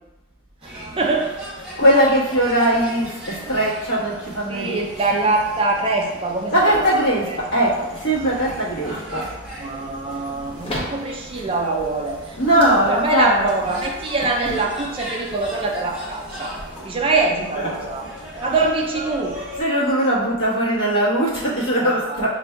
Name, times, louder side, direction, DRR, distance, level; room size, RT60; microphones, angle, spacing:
sound 1, 0.6-19.6, equal, 5° right, 0.9 m, -37 dB
voice 1, 0.6-1.7 4.5-7.4 9.6-16.5 16.8-18.0 18.4-19.4 21.8-22.3, right 3 dB, 25° right, 1 dB, 0.3 m, -24 dB
voice 2, 1.8-5.3 6.5-9.3 12.4-13.5 17.4-17.9 18.5-18.7 19.1-22.4, right 1 dB, 55° left, -7 dB, 1.3 m, -20 dB
sound 2, 10.3-16.9, left 1 dB, 25° left, 0.7 m, -37 dB
6.6 x 2.6 x 2.2 m, 1.1 s
head